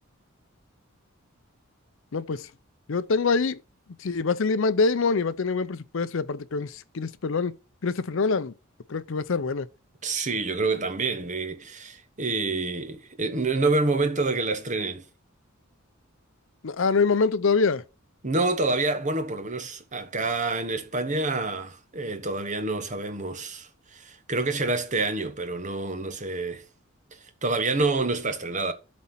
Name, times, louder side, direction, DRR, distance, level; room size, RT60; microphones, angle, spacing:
voice 1, 2.1-2.5 2.9-3.6 4.0-7.5 7.8-8.5 8.9-9.7 16.6-17.8, left 4 dB, 60° left, 0.5 m, -25 dB
voice 2, 10.0-15.0 18.2-26.6 27.1-28.7, right 3 dB, 35° right, 1.2 m, -27 dB
11.5 x 4.2 x 5.7 m
head